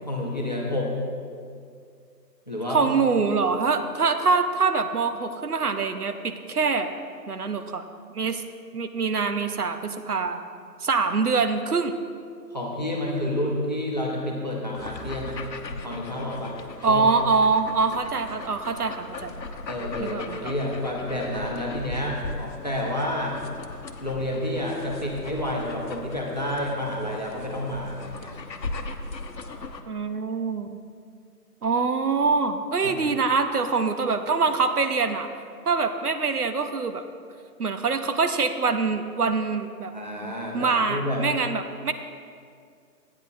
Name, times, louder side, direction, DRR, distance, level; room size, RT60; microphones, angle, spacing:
voice 1, 0.1-0.9 2.5-2.8 12.5-15.4 15.7-16.6 16.9-17.1 19.7-23.4 24.0-28.3 32.8-33.1 39.9-41.2, left 1 dB, 25° left, -2 dB, 0.9 m, -29 dB
voice 2, 2.7-6.9 7.3-7.8 8.1-8.4 8.7-10.4 10.8-11.9 16.8-19.3 20.0-20.5 29.9-30.7 31.6-35.3 35.7-37.0 37.6-39.9 40.2-41.9, right 4 dB, 65° right, 9 dB, 0.7 m, -24 dB
sound 1, 14.7-29.8, left 3 dB, 85° left, 1.0 m, -38 dB
13.5 x 9.4 x 2.6 m, 2.2 s
hypercardioid pair, 180°, 49 cm